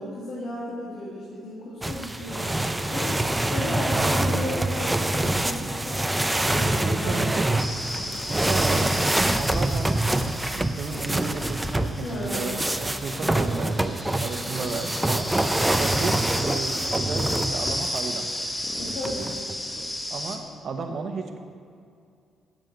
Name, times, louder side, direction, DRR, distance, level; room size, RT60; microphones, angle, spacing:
voice 1, 0.0-7.4 7.9-8.2 12.0-12.5 18.8-19.3, left 1 dB, 70° left, -6 dB, 2.2 m, -35 dB
sound 1, 1.8-18.2 18.9-19.6, right 1 dB, 10° right, 0.5 m, -26 dB
voice 2, 6.8-7.5 8.3-10.0 10.5-15.3 15.8-18.3 20.1-21.4, right 4 dB, 55° right, 5 dB, 1.0 m, -33 dB
sound 2, 7.6-20.4, left 1 dB, 15° left, 1.2 m, -33 dB
7.9 x 7.6 x 6.6 m, 2.4 s
cardioid pair, 90°, 0 cm